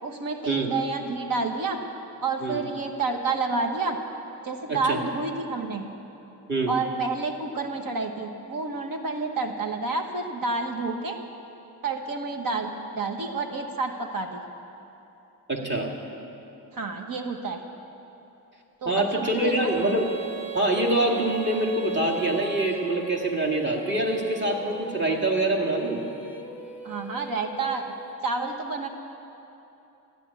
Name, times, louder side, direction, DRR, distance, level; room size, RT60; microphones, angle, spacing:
voice 1, 0.0-1.8 2.2-4.0 4.4-5.8 6.7-11.2 11.8-14.4 16.7-17.6 18.8-19.9 26.8-27.9 28.2-28.9, right 3 dB, 55° right, 5 dB, 1.1 m, -29 dB
voice 2, 4.7-5.0 6.5-6.7 15.5-15.9 18.9-20.1 20.5-26.0, right 1 dB, 30° right, -1 dB, 2.0 m, -25 dB
Female singing, 19.3-28.1, right 7 dB, 5° right, 1.6 m, -38 dB
14.0 x 9.8 x 8.3 m, 2.9 s
cardioid pair, 120°, 39 cm